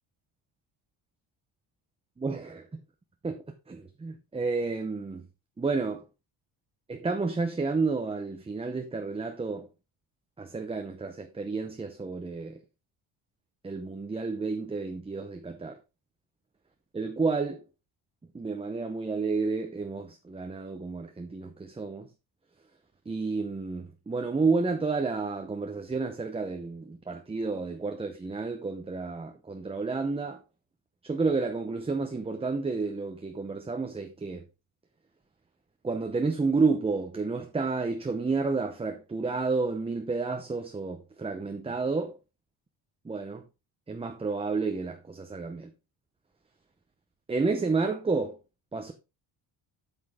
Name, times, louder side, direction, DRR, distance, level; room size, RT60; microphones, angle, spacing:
voice 1, 2.2-2.7 3.2-5.3 5.6-6.0 6.9-9.7 10.4-12.6 13.6-15.8 16.9-17.6 18.3-22.1 23.1-30.4 31.0-34.5 35.8-42.2 43.0-43.4 43.9-45.7 47.3-48.4 48.7-48.9, right 4 dB, 10° right, 0.7 m, -30 dB
8.8 x 6.3 x 3.6 m
cardioid pair, 155°, 47 cm